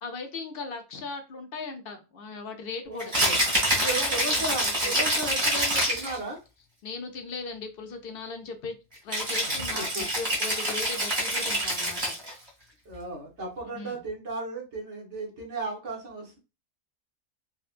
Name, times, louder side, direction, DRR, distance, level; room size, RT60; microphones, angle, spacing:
voice 1, 0.0-3.1 3.7-5.0 6.8-8.8 9.0-12.1 13.7-14.0, left 4 dB, 60° left, 0.6 m, -38 dB
voice 2, 2.8-3.3 3.8-6.4 9.4-10.1 12.8-16.4, right 2 dB, 55° right, 1.3 m, -35 dB
Rattle (instrument), 3.0-6.2 9.1-12.3, right 1 dB, 30° right, 1.4 m, -26 dB
3.8 x 2.2 x 2.4 m
omnidirectional pair, 1.5 m